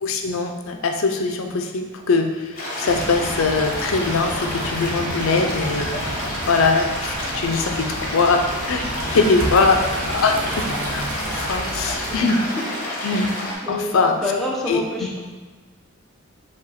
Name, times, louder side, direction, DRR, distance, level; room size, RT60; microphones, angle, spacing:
voice 1, 0.0-6.2 6.5-9.8 10.1-12.4 13.0-13.3 13.7-14.1 14.7-14.8, left 4 dB, 65° left, 5 dB, 0.5 m, -22 dB
sound 1, 2.6-13.5, left 1 dB, 40° left, 1.0 m, -29 dB
sound 2, 2.9-12.2, right 1 dB, 65° right, 0.7 m, -32 dB
voice 2, 13.6-14.0 14.2-15.2, left 2 dB, ahead, -5 dB, 0.7 m, -27 dB
4.9 x 2.3 x 4.1 m, 1.3 s
head